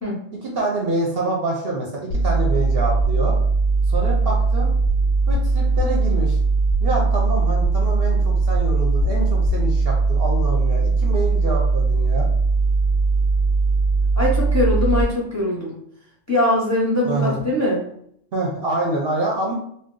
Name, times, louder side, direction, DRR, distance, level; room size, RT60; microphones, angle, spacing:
voice 1, 0.3-3.4 3.9-4.7 5.3-6.4 6.8-12.3 17.0-17.5 18.3-19.5, right 2 dB, 55° right, -2 dB, 0.8 m, -26 dB
sound 1, 2.1-15.0, right 3 dB, 55° left, 0.5 m, -19 dB
voice 2, 14.2-15.8 16.3-17.8, left 1 dB, 15° left, -5 dB, 0.7 m, -21 dB
2.6 x 2.2 x 3.7 m, 0.68 s
omnidirectional pair, 1.3 m